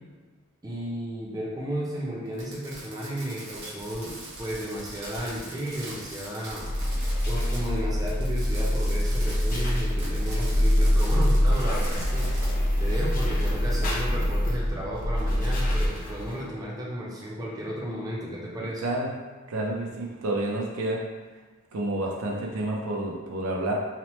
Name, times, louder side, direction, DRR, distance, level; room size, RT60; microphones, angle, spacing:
voice 1, 0.6-6.7 7.2-12.3 12.8-18.8, equal, 15° right, -4 dB, 0.5 m, -33 dB
Fireworks, 2.3-7.7 8.0-12.5, right 1 dB, 55° right, 0.8 m, -42 dB
sound 1, 6.6-16.5, equal, 40° left, 0.5 m, -25 dB
voice 2, 19.5-21.0 21.7-23.7, right 1 dB, 80° right, -1 dB, 0.5 m, -29 dB
2.9 x 2.0 x 3.0 m, 1.4 s
head